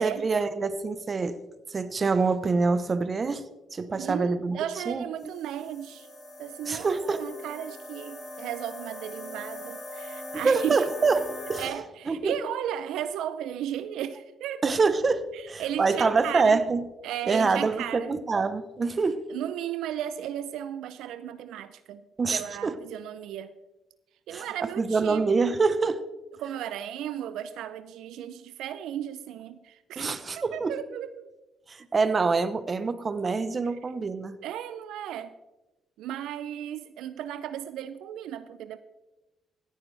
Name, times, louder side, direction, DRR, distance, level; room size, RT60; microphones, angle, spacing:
voice 1, 0.0-1.4 1.7-3.4 3.7-4.6 4.9-5.0 6.7-7.2 10.3-11.7 12.1-12.3 14.6-15.2 15.5-16.9 17.3-19.2 22.2-22.7 24.3-24.5 24.8-26.0 30.0-30.7 31.7-34.4, right 4 dB, 35° right, 12 dB, 0.9 m, -25 dB
voice 2, 3.9-6.1 6.4-10.8 11.6-14.7 15.3-16.6 17.0-18.2 19.3-22.0 22.3-23.5 24.3-25.5 26.4-31.3 33.6-33.8 34.4-35.3 36.0-38.8, right 10 dB, 85° right, 12 dB, 0.5 m, -35 dB
sound 1, 5.2-11.7, left 1 dB, 50° left, 3.3 m, -41 dB
16.0 x 10.5 x 3.3 m, 1.0 s
cardioid pair, 90°, 0 cm